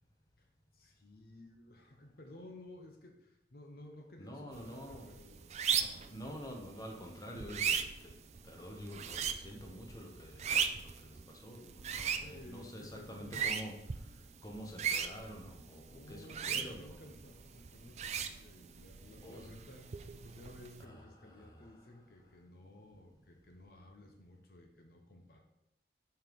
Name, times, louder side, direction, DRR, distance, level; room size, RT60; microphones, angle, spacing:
voice 1, 0.7-6.1 11.9-13.5 15.9-25.4, left 1 dB, 60° left, 3 dB, 0.8 m, -55 dB
voice 2, 4.2-5.1 6.1-8.1 8.4-17.1 19.2-19.5 20.8-22.3, equal, 20° left, 1 dB, 1.0 m, -48 dB
sound 1, 4.5-20.8, right 7 dB, 40° right, 0.4 m, -39 dB
5.7 x 4.6 x 5.3 m, 0.84 s
head